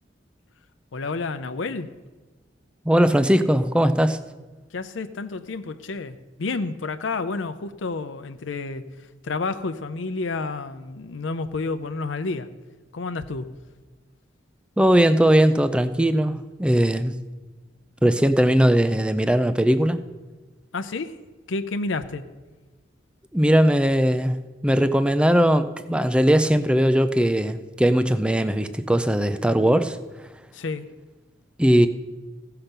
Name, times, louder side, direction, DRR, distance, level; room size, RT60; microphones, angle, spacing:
voice 1, 0.9-1.9 4.7-8.8 9.2-12.5 12.9-13.5 20.7-21.2 21.5-22.2 30.5-30.9, left 3 dB, 85° left, 10 dB, 0.6 m, -30 dB
voice 2, 2.9-4.2 14.8-17.1 18.0-20.0 23.3-24.4 24.6-30.0 31.6-31.9, equal, 5° right, 11 dB, 0.4 m, -19 dB
16.0 x 5.8 x 6.6 m, 1.3 s
head